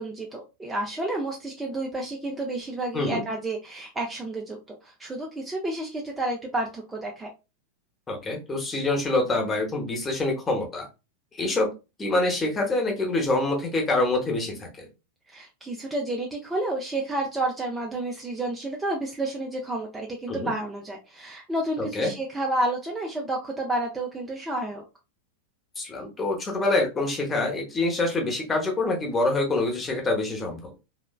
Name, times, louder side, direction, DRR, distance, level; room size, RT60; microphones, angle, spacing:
voice 1, 0.0-7.3 15.3-24.8, right 1 dB, 10° right, 0 dB, 0.4 m, -30 dB
voice 2, 8.1-10.9 11.4-11.7 12.0-14.9 20.3-20.5 21.8-22.1 25.8-30.7, left 2 dB, 20° left, 1 dB, 0.9 m, -26 dB
3.0 x 2.1 x 2.2 m, 0.28 s
figure-of-eight pair, 90°, 0 cm